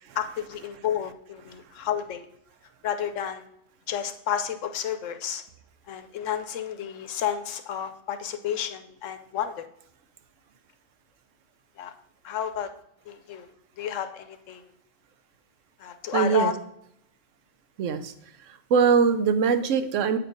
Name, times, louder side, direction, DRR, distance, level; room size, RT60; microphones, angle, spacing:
voice 1, 0.2-2.3 2.8-3.5 3.9-5.4 5.9-9.7 11.8-11.9 12.2-12.7 13.1-13.5 13.8-14.7 15.8-16.5, left 9 dB, 80° left, 10 dB, 1.1 m, -31 dB
voice 2, 16.1-16.5 17.8-18.1 18.7-20.2, right 6 dB, 80° right, 10 dB, 1.0 m, -21 dB
8.3 x 4.4 x 5.1 m, 0.75 s
omnidirectional pair, 1.3 m